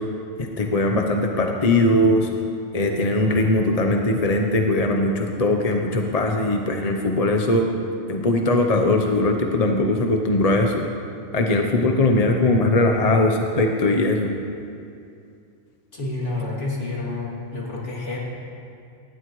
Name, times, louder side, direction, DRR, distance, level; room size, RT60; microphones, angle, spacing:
voice 1, 0.4-2.3 2.7-7.7 8.1-10.8 11.3-14.3, left 2 dB, 35° left, 3 dB, 0.8 m, -20 dB
voice 2, 15.9-18.2, left 2 dB, 55° left, -5 dB, 3.1 m, -29 dB
19.0 x 16.0 x 3.2 m, 2.5 s
omnidirectional pair, 1.4 m